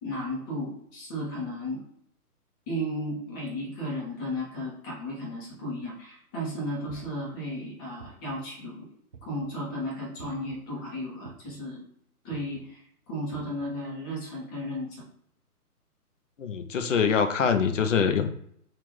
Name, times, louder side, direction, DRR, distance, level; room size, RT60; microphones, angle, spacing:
voice 1, 0.0-1.8 2.7-8.8 9.3-11.8 12.2-12.8 13.1-15.1, equal, 15° left, -5 dB, 0.8 m, -34 dB
sound 1, 6.9-7.3 8.0-8.5 9.1-9.6 10.2-10.6 11.2-11.7 12.3-12.6 13.3-13.7, right 6 dB, 40° right, 0.4 m, -49 dB
voice 2, 16.4-18.3, left 6 dB, 55° left, 8 dB, 0.6 m, -24 dB
3.3 x 2.5 x 3.7 m, 0.67 s
figure-of-eight pair, 140°, 46 cm